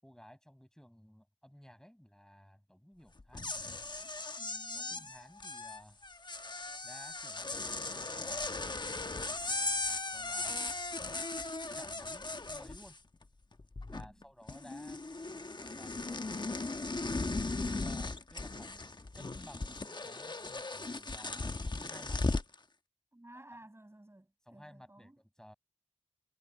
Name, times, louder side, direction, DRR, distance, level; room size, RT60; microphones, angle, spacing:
voice 1, 0.0-3.6 4.7-6.1 6.8-9.0 10.1-10.6 11.8-13.0 13.9-15.0 15.6-16.5 17.7-18.9 19.1-22.2 23.3-23.5 24.5-25.6, equal, 5° left, 5.6 m, -56 dB
sound 1, 3.2-13.2 13.5-14.2 14.5-22.6, left 3 dB, 35° left, 1.1 m, -38 dB
voice 2, 4.4-5.1 13.9-14.2 23.1-25.2, right 1 dB, 20° right, 6.7 m, -55 dB
cardioid pair, 55°, 13 cm